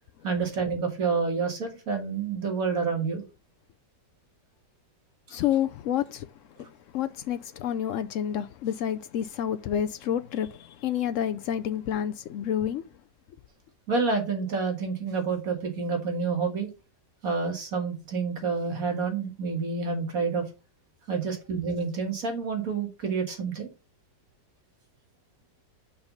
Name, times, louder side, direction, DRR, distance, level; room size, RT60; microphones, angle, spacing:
voice 1, 0.2-3.2 5.3-5.4 13.9-16.7 17.2-20.4 21.1-23.7, right 4 dB, 50° right, 2.2 m, -28 dB
voice 2, 5.3-6.3 6.6-6.7 6.9-12.8, left 10 dB, 90° left, 0.6 m, -29 dB
5.7 x 5.5 x 5.2 m
omnidirectional pair, 1.9 m